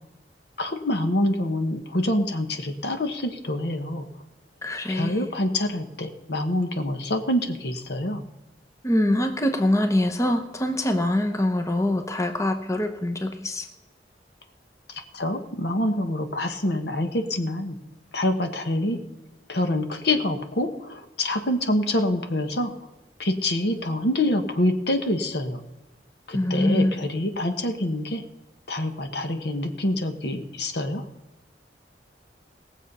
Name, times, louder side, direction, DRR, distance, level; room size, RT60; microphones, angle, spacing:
voice 1, 0.6-4.1 4.9-8.2 14.9-17.8 18.1-19.0 19.5-22.7 23.2-25.6 26.3-28.2 28.7-31.0, left 1 dB, 70° left, 6 dB, 1.4 m, -26 dB
voice 2, 4.6-5.3 8.8-13.7 26.3-27.0, left 1 dB, 20° left, 5 dB, 0.9 m, -24 dB
19.0 x 7.3 x 5.5 m, 1.0 s
head